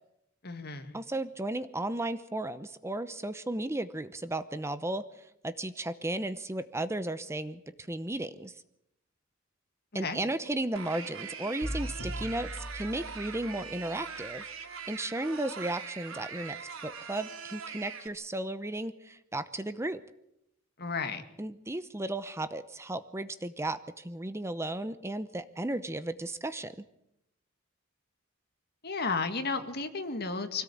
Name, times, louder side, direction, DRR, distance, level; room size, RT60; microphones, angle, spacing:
voice 1, 0.4-0.9 10.0-10.2 20.8-21.2 28.8-30.6, left 4 dB, 50° left, 8 dB, 2.1 m, -33 dB
voice 2, 0.9-7.6 7.9-8.6 9.9-14.5 14.9-20.0 21.4-26.8, right 1 dB, 15° right, 12 dB, 0.8 m, -35 dB
sound 1, 10.8-18.1, right 6 dB, 85° right, 2.7 m, -42 dB
sound 2, 11.6-13.7, equal, 70° left, 4.1 m, -39 dB
25.0 x 17.0 x 8.6 m, 0.82 s
head